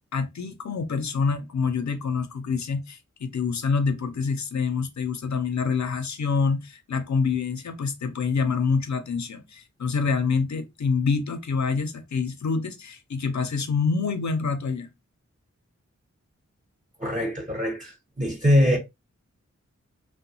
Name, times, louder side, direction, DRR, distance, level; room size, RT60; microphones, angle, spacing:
voice 1, 0.1-14.9, left 5 dB, 70° left, 0.6 m, -26 dB
voice 2, 17.0-18.8, equal, 25° right, 0.8 m, -23 dB
2.8 x 2.2 x 2.6 m
wide cardioid pair, 45°, 29 cm